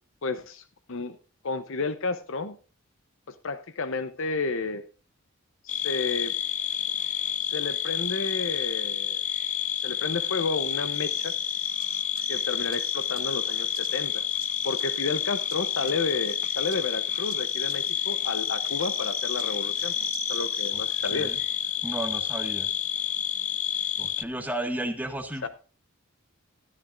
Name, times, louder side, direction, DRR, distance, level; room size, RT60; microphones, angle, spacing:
voice 1, 0.2-1.2 1.4-2.6 3.3-4.8 5.6-6.3 7.5-9.2 9.8-11.3 12.3-14.2 14.6-19.9 20.3-21.3 25.4-25.5, left 4 dB, 65° left, 11 dB, 0.8 m, -31 dB
sound 1, 5.7-24.2, left 9 dB, 35° left, 0.5 m, -29 dB
sound 2, 10.6-21.5, right 11 dB, 75° right, 1.2 m, -45 dB
voice 2, 20.7-21.4 21.8-22.7 24.0-25.5, right 1 dB, 10° right, 4 dB, 1.7 m, -33 dB
13.0 x 12.0 x 2.5 m, 0.35 s
head